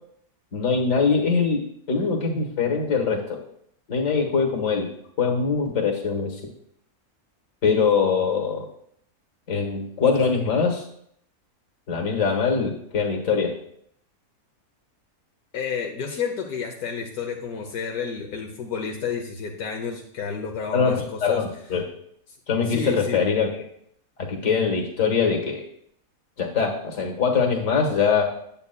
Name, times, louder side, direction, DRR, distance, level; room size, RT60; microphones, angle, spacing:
voice 1, 0.5-3.4 3.9-4.9 5.2-6.4 7.6-8.7 9.5-10.8 11.9-13.6 20.7-21.9 22.5-23.5 24.2-25.6 26.4-28.2, left 5 dB, 60° left, 2 dB, 1.7 m, -23 dB
voice 2, 15.5-21.4 22.6-23.2, left 6 dB, 85° left, 0 dB, 1.3 m, -30 dB
8.9 x 8.1 x 2.2 m, 0.68 s
omnidirectional pair, 1.6 m